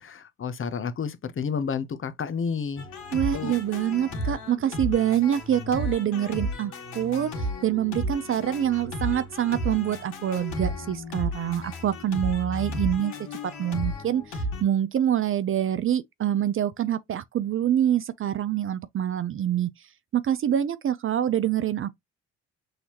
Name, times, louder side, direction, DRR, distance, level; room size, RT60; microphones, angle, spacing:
voice 1, 0.0-2.9 3.3-3.6, left 6 dB, 40° left, 0.8 m, -30 dB
sound 1, 2.8-14.6, equal, 85° left, 1.8 m, -33 dB
voice 2, 3.1-13.2 13.6-19.7 20.1-21.9, right 10 dB, 40° right, 0.5 m, -26 dB
6.4 x 2.8 x 2.9 m
hypercardioid pair, 55°, 34 cm